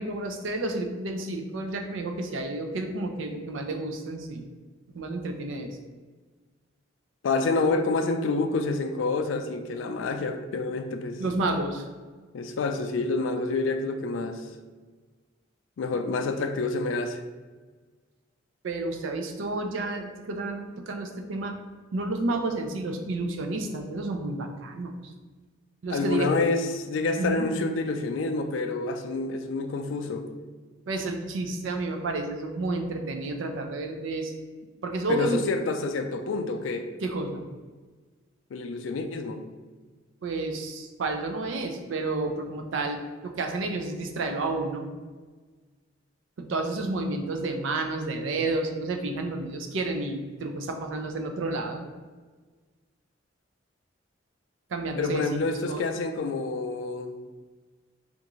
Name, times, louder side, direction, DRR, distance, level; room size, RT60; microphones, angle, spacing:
voice 1, 0.0-4.4 4.9-5.8 11.2-11.9 18.6-21.6 21.9-24.9 25.8-26.3 27.2-27.4 30.9-34.3 34.8-35.4 37.0-37.4 40.2-44.9 46.4-51.9 54.7-55.4 55.7-55.8, right 2 dB, 90° right, 4 dB, 0.4 m, -30 dB
voice 2, 7.2-11.2 12.3-14.5 15.8-17.2 25.9-30.3 35.1-36.9 38.5-39.4 55.0-57.2, left 3 dB, 85° left, 6 dB, 0.4 m, -28 dB
3.5 x 2.5 x 3.0 m, 1.4 s
head